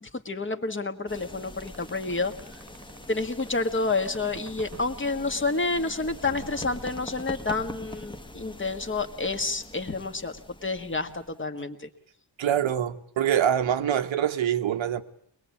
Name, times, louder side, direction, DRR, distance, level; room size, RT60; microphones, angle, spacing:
voice 1, 0.0-2.3 3.1-11.9, left 3 dB, 25° left, 1.7 m, -29 dB
sound 1, 1.1-11.4, left 1 dB, 10° left, 1.3 m, -43 dB
sound 2, 1.7-4.9 6.2-7.6, right 5 dB, 35° right, 1.3 m, -46 dB
voice 2, 12.4-15.0, right 10 dB, 90° right, 1.4 m, -25 dB
23.5 x 21.5 x 8.5 m
wide cardioid pair, 145°, 45 cm